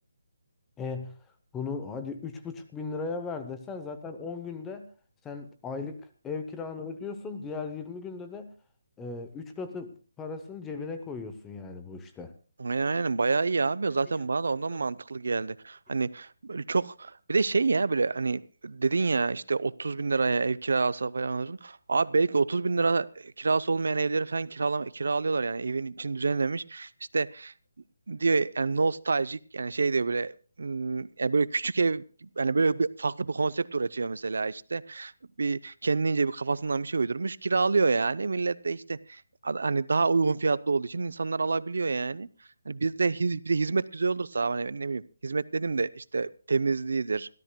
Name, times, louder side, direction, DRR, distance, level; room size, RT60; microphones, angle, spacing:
voice 1, 0.8-1.1 1.5-4.9 5.2-8.5 9.0-12.3 14.7-14.8, left 4 dB, 5° left, 8 dB, 0.8 m, -37 dB
voice 2, 12.6-27.5 28.1-35.1 35.4-42.3 42.7-47.3, right 4 dB, 70° right, 18 dB, 0.6 m, -27 dB
26.0 x 13.5 x 2.2 m, 0.37 s
hypercardioid pair, 175°, 0 cm